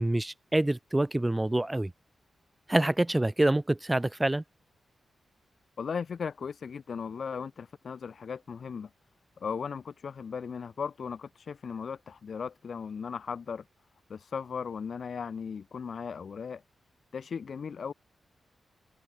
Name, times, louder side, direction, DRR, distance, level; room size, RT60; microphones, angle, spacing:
voice 1, 0.0-1.9 2.7-4.4, right 1 dB, 15° right, 1.1 m, -26 dB
voice 2, 5.8-8.9 9.4-13.6 14.1-16.6 17.1-17.9, left 6 dB, 60° left, 2.2 m, -37 dB
open air
wide cardioid pair, 100°, 0 cm